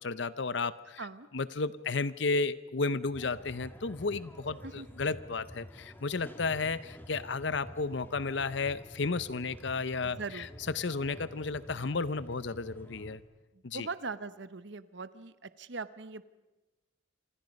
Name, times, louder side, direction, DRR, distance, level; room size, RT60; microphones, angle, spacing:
voice 1, 0.0-1.0 1.3-10.5 10.7-13.2 13.6-13.9, left 4 dB, 60° left, 16 dB, 0.7 m, -33 dB
sound 1, 3.1-13.2, equal, 10° left, 1.6 m, -49 dB
voice 2, 10.0-10.5 13.7-16.2, right 4 dB, 60° right, 14 dB, 0.9 m, -40 dB
27.0 x 26.0 x 5.3 m, 1.1 s
head